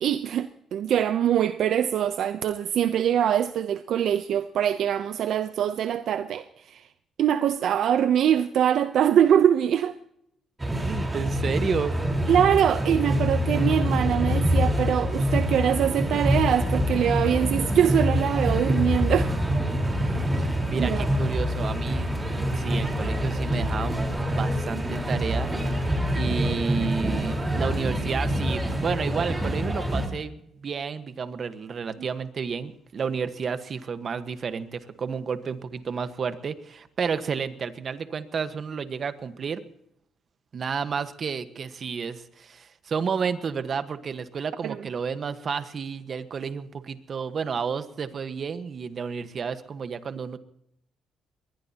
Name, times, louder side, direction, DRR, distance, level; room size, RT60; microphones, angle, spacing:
voice 1, 0.0-6.8 7.2-10.0 12.3-19.3 20.8-21.1 44.6-44.8, right 9 dB, 70° right, 0.7 m, -23 dB
sound 1, 10.6-30.1, equal, 15° right, 4.2 m, -26 dB
voice 2, 10.8-12.2 20.4-25.8 26.1-39.6 40.5-50.4, right 6 dB, 50° right, 1.3 m, -31 dB
22.0 x 20.0 x 2.9 m
cardioid pair, 90°, 0 cm